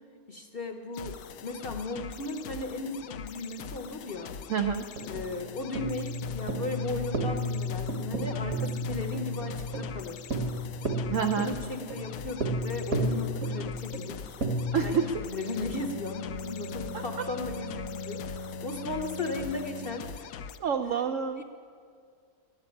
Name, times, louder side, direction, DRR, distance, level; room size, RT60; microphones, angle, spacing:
voice 1, 0.3-4.3 5.0-10.2 11.2-14.4 14.8-15.0 15.3-20.3 21.4-21.5, left 3 dB, 40° left, 4 dB, 0.9 m, -36 dB
sound 1, 0.9-20.6, left 7 dB, 70° left, 1.0 m, -43 dB
voice 2, 4.5-4.8 11.1-11.6 14.7-15.2 16.9-17.2 20.6-21.4, right 6 dB, 70° right, 7 dB, 0.7 m, -28 dB
sound 2, 5.0-15.1, equal, 50° right, 1.7 m, -33 dB
Bowed string instrument, 15.1-20.2, left 3 dB, 90° left, 1.5 m, -40 dB
12.0 x 9.5 x 9.9 m, 2.2 s
omnidirectional pair, 1.9 m